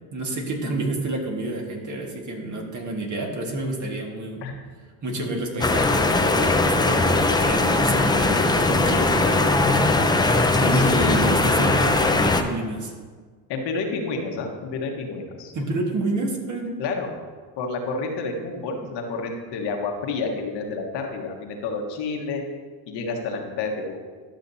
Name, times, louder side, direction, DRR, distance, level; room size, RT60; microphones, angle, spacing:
voice 1, 0.1-4.5 5.0-10.1 10.6-12.9 15.5-16.8, right 2 dB, 40° right, 1 dB, 1.8 m, -29 dB
sound 1, 5.6-12.4, left 2 dB, 10° left, 0.5 m, -20 dB
voice 2, 10.7-11.4 13.5-15.5 16.8-17.2 17.6-22.4 22.9-24.0, left 3 dB, 65° left, 2 dB, 1.4 m, -29 dB
12.0 x 6.3 x 2.7 m, 1.5 s
supercardioid pair, 85°, 45 cm